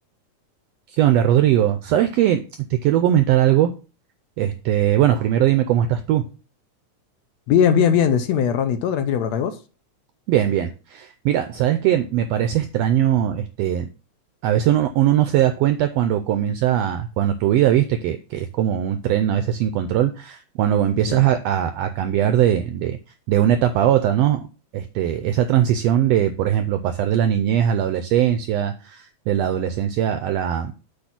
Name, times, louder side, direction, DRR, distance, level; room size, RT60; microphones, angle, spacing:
voice 1, 0.9-3.7 4.4-6.3 10.3-13.9 14.4-23.0 23.3-24.4 24.7-30.7, right 11 dB, 85° right, 1.4 m, -20 dB
voice 2, 7.5-9.6 21.1-21.2, left 8 dB, 75° left, 1.8 m, -19 dB
7.9 x 3.4 x 5.9 m
omnidirectional pair, 3.4 m